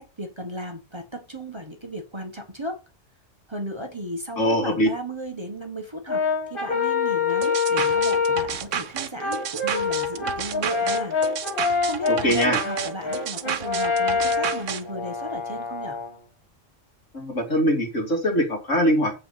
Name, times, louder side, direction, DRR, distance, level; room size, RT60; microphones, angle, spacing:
voice 1, 0.0-2.8 3.5-6.2 6.5-11.2 11.8-16.0, right 1 dB, 25° right, 1.2 m, -35 dB
voice 2, 4.4-4.9 12.1-12.6 17.1-19.1, equal, 80° left, 3.1 m, -22 dB
Brass instrument, 6.1-8.6 9.2-16.1, left 5 dB, 45° left, 2.8 m, -25 dB
sound 1, 7.4-14.8, right 8 dB, 80° right, 1.1 m, -31 dB
7.9 x 5.5 x 5.7 m
omnidirectional pair, 1.3 m